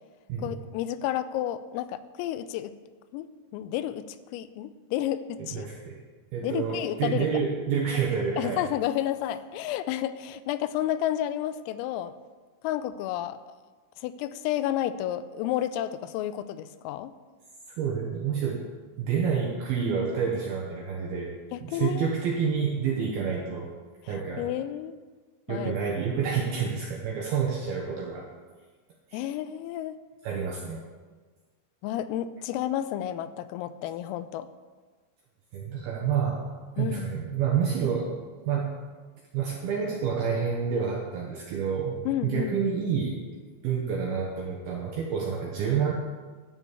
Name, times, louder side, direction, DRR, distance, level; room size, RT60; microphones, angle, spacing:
voice 1, 0.4-2.7 3.1-3.3 3.5-4.1 4.3-5.7 6.4-7.3 8.4-12.1 12.6-13.4 14.0-17.1 21.5-22.1 24.0-25.0 25.5-25.7 29.1-30.0 31.8-34.5 36.8-37.1 42.1-42.6, left 12 dB, 90° left, 12 dB, 3.3 m, -31 dB
voice 2, 5.4-6.0 6.3-8.6 17.8-18.7 19.0-21.3 21.6-23.7 24.1-24.5 25.5-28.3 29.1-29.2 30.2-30.8 35.5-36.5 36.8-38.2 38.5-38.8 39.3-43.2 43.6-45.9, right 6 dB, 75° right, -1 dB, 2.3 m, -28 dB
11.5 x 7.1 x 8.5 m, 1.4 s
omnidirectional pair, 5.9 m